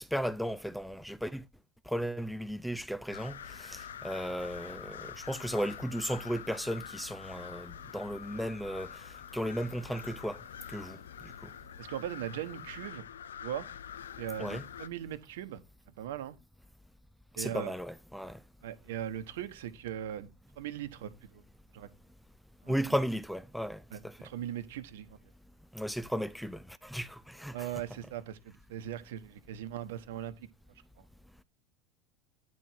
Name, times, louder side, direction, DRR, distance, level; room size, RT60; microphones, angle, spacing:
voice 1, 0.0-1.4 1.9-10.4 10.7-11.0 11.4-11.5 14.4-14.6 17.4-18.4 22.7-24.2 25.7-27.7, equal, ahead, 0.6 m, -35 dB
sound 1, 3.1-14.9, left 9 dB, 85° left, 0.4 m, -46 dB
voice 2, 11.8-13.0 13.4-13.7 14.2-15.6 15.9-16.4 17.3-17.7 18.6-20.3 20.6-21.4 21.7-21.9 22.6-22.7 23.9-25.1 27.5-30.5, right 11 dB, 75° right, 1.1 m, -39 dB
9.8 x 4.7 x 5.7 m
hypercardioid pair, 85°, 0 cm